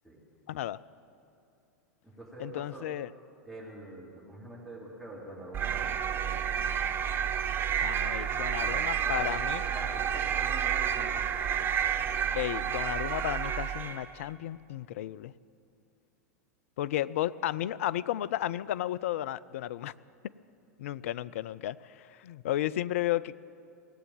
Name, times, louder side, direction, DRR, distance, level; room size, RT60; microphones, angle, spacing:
voice 1, 0.5-0.8 2.4-3.1 7.8-9.6 12.3-15.3 16.8-19.9 20.2-20.3 20.8-23.3, left 13 dB, 55° left, 18 dB, 0.4 m, -33 dB
voice 2, 2.0-2.9 3.4-6.8 8.5-11.6, right 1 dB, ahead, -6 dB, 3.8 m, -45 dB
sound 1, 5.5-14.1, right 8 dB, 25° right, 0.6 m, -30 dB
18.0 x 8.2 x 9.0 m, 2.5 s
figure-of-eight pair, 95°, 9 cm